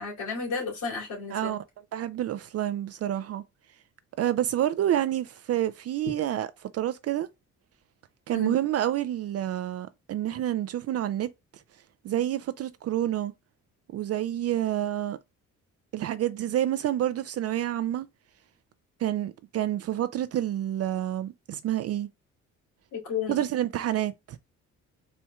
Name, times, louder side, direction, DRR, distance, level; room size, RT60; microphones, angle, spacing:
voice 1, 0.0-1.6 8.3-8.5 22.9-23.4, left 5 dB, 75° left, 2.6 m, -32 dB
voice 2, 1.3-1.6 1.9-3.4 4.2-7.3 8.3-11.3 12.0-13.3 13.9-15.2 15.9-18.1 19.0-22.1 23.3-24.4, right 12 dB, 55° right, 0.4 m, -28 dB
4.3 x 4.2 x 2.3 m
cardioid pair, 90°, 30 cm